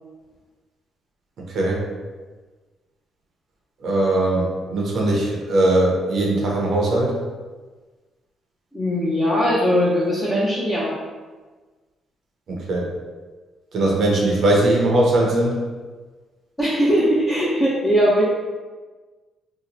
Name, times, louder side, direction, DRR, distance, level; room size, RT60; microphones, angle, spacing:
voice 1, 1.4-1.8 3.8-7.2 12.5-12.9 13.7-15.5, right 1 dB, 60° right, -2 dB, 0.7 m, -20 dB
voice 2, 8.7-10.9 16.6-18.2, equal, 15° left, -8 dB, 0.8 m, -20 dB
2.9 x 2.1 x 3.8 m, 1.3 s
cardioid pair, 90°, 0 cm